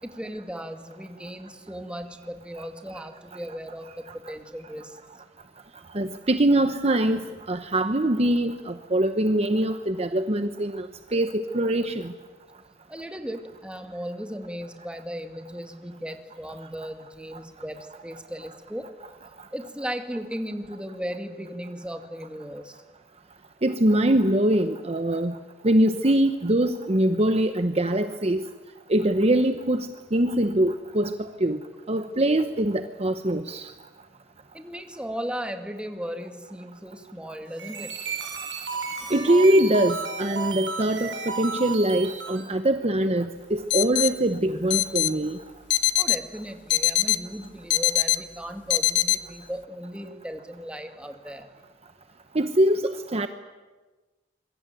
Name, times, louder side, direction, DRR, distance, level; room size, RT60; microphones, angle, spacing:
voice 1, 0.0-5.0 12.9-18.9 19.5-22.8 34.5-38.0 46.0-51.5, equal, 5° right, 5 dB, 2.3 m, -36 dB
voice 2, 5.9-7.2 7.5-10.9 11.1-12.1 23.6-25.3 25.6-28.5 28.9-31.1 31.4-31.6 31.9-33.7 39.1-45.4 52.3-52.8 53.1-53.3, right 1 dB, 35° right, 8 dB, 1.0 m, -23 dB
sound 1, 37.4-42.5, right 5 dB, 85° right, 6.6 m, -33 dB
sound 2, 43.7-44.1 44.7-45.1 45.7-46.2 46.7-47.2 47.7-48.2 48.7-49.2, left 15 dB, 75° left, 1.1 m, -21 dB
26.0 x 23.5 x 9.2 m, 1.3 s
head